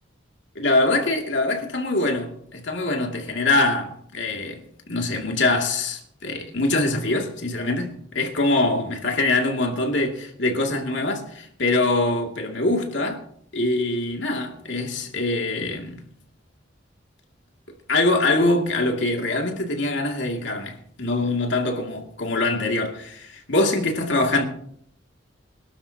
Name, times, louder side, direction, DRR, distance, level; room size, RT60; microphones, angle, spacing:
voice 1, 0.5-4.6 4.9-13.2 13.5-16.0 17.9-24.4, left 2 dB, 70° left, 2.6 m, -23 dB
25.5 x 12.0 x 2.9 m
head